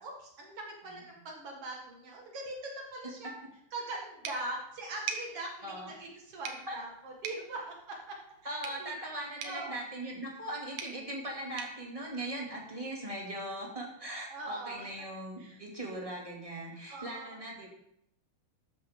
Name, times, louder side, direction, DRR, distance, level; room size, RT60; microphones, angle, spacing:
voice 1, 0.0-3.3 3.7-8.2 8.4-9.0 9.4-9.7 14.3-15.1 15.4-15.6 16.9-17.4, right 2 dB, 70° right, -1 dB, 1.4 m, -42 dB
sound 1, 4.2-12.9, right 6 dB, 85° right, 1.7 m, -46 dB
voice 2, 8.4-17.7, right 1 dB, 15° right, -3 dB, 1.3 m, -39 dB
13.5 x 11.0 x 3.8 m, 0.75 s
omnidirectional pair, 5.6 m